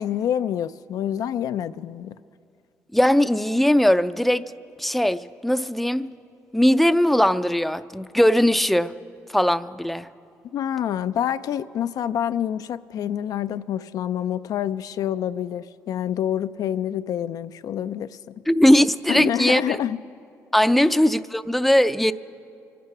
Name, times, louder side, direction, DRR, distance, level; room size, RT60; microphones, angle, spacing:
voice 1, 0.0-2.2 10.5-18.4 19.1-20.0 20.7-20.9, left 10 dB, 70° left, 0.4 m, -27 dB
voice 2, 2.9-4.4 4.8-6.1 6.5-8.9 9.3-10.1 18.5-19.8 20.5-22.1, equal, ahead, 0.5 m, -19 dB
24.5 x 9.4 x 6.0 m
supercardioid pair, 65°, 7 cm